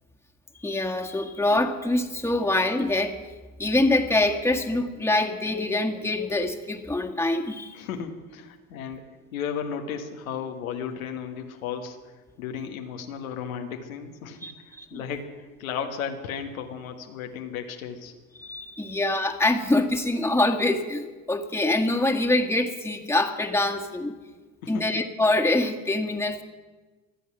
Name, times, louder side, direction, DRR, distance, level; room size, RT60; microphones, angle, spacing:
voice 1, 0.6-3.2 3.6-7.8 14.4-15.0 18.4-24.1 24.7-26.4, left 2 dB, 5° left, 3 dB, 1.8 m, -25 dB
voice 2, 7.7-9.0 9.3-12.0 12.4-18.1 24.6-24.9, left 7 dB, 85° left, 4 dB, 1.5 m, -34 dB
24.5 x 8.2 x 6.1 m, 1.3 s
hypercardioid pair, 70°, 41 cm